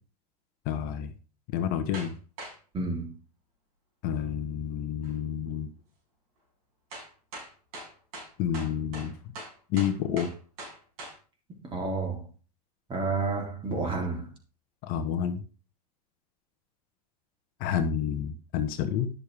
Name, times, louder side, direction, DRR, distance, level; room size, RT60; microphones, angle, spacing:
voice 1, 0.7-1.1 1.5-2.1 4.0-5.7 8.4-9.1 9.7-10.3 14.8-15.4 17.6-19.1, left 8 dB, 45° left, 1.1 m, -29 dB
sound 1, 1.9-2.1 2.4-2.6 5.0-5.1 6.9-11.2, right 2 dB, 60° right, 5.6 m, -42 dB
voice 2, 2.7-3.1 11.5-12.2 12.9-14.3, right 3 dB, 25° right, 3.2 m, -30 dB
11.5 x 6.5 x 3.5 m
hypercardioid pair, 100°, 20 cm